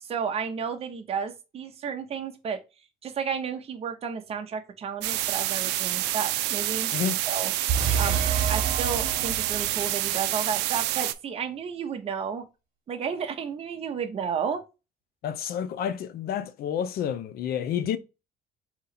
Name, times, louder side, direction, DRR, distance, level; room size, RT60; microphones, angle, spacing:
voice 1, 0.0-2.6 3.0-6.9 7.3-7.5 8.0-12.4 12.9-14.6, right 6 dB, 35° right, 0.7 m, -32 dB
sound 1, 5.0-11.1, right 15 dB, 85° right, 0.4 m, -28 dB
sound 2, 7.7-10.0, right 6 dB, 55° right, 1.1 m, -28 dB
voice 2, 15.2-18.0, left 9 dB, 65° left, 0.5 m, -29 dB
3.9 x 2.9 x 4.1 m
cardioid pair, 110°, 17 cm